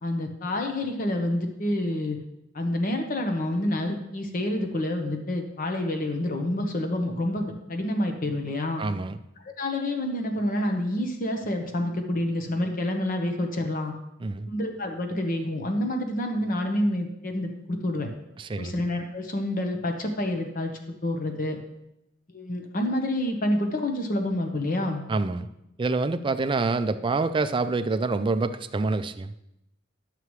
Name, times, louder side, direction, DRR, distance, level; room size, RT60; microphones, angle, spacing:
voice 1, 0.0-2.2 2.5-8.8 9.4-13.9 14.5-18.1 18.6-20.7 21.0-21.6 22.3-25.0, left 1 dB, 45° left, 4 dB, 1.0 m, -28 dB
voice 2, 8.8-9.2 14.2-14.5 18.4-18.7 25.1-25.5 25.8-29.3, right 3 dB, 25° right, 10 dB, 0.4 m, -26 dB
11.0 x 6.7 x 3.2 m, 0.87 s
head